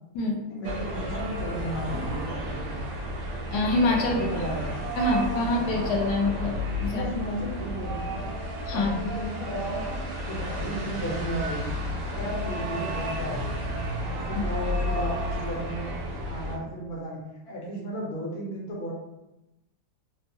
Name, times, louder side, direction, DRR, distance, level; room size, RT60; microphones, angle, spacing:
voice 1, 0.5-2.9 4.0-4.8 6.8-8.3 8.7-11.7 12.1-13.6 14.1-15.9 16.2-17.2 17.4-18.9, equal, 50° left, -3 dB, 0.8 m, -34 dB
sound 1, 0.6-16.6, equal, 80° right, 1.2 m, -32 dB
voice 2, 3.5-4.2 5.0-7.0 8.7-8.9, left 2 dB, 70° left, 0 dB, 1.1 m, -25 dB
2.9 x 2.2 x 2.7 m, 0.94 s
omnidirectional pair, 1.8 m